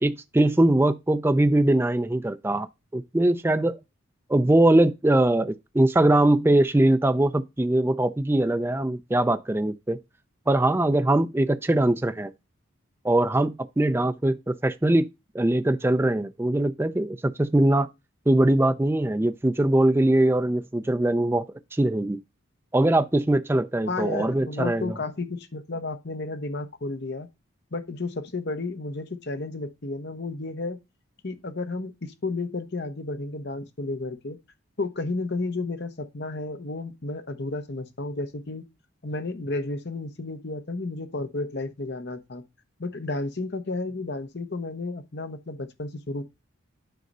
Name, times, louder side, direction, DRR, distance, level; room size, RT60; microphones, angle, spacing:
voice 1, 0.0-2.7 2.9-3.8 4.3-10.0 10.5-12.3 13.0-15.1 15.3-17.9 18.3-21.4 21.7-22.2 22.7-24.9, right 1 dB, 10° right, 0.4 m, -22 dB
voice 2, 23.9-27.3 27.7-30.8 31.2-34.4 34.8-38.6 39.0-42.4 42.8-46.2, left 2 dB, 50° left, 0.9 m, -32 dB
9.2 x 3.9 x 5.4 m
head